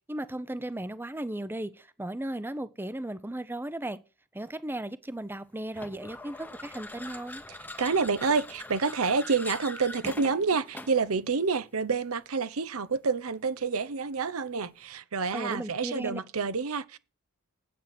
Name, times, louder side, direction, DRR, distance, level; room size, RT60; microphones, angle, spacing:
voice 1, 0.1-4.0 4.3-7.4 15.3-16.2, right 1 dB, 10° right, 0.6 m, -36 dB
sound 1, 5.7-11.1, left 2 dB, 10° left, 1.0 m, -42 dB
voice 2, 7.8-17.0, right 4 dB, 75° right, 0.8 m, -28 dB
9.4 x 8.2 x 6.0 m
head